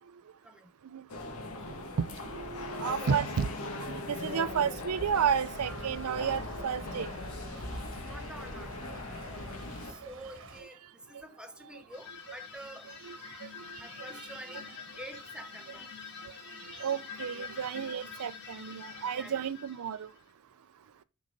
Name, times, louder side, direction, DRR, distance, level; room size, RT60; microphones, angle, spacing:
sound 1, 1.1-9.9, left 2 dB, 70° left, 1.3 m, -39 dB
voice 1, 2.0-3.5 3.8-7.1 13.0-14.1 16.7-20.1, right 7 dB, 75° right, 0.4 m, -32 dB
Stream / Trickle dribble, 5.4-10.6, right 2 dB, 60° right, 1.3 m, -50 dB
voice 2, 8.0-8.7 9.3-10.8 11.1-12.9 13.8-14.7 15.0-15.9 17.9-18.0 19.1-19.5, right 1 dB, 5° right, 0.8 m, -47 dB
sound 2, 11.9-20.3, left 6 dB, 50° left, 1.7 m, -46 dB
6.5 x 3.9 x 5.3 m
head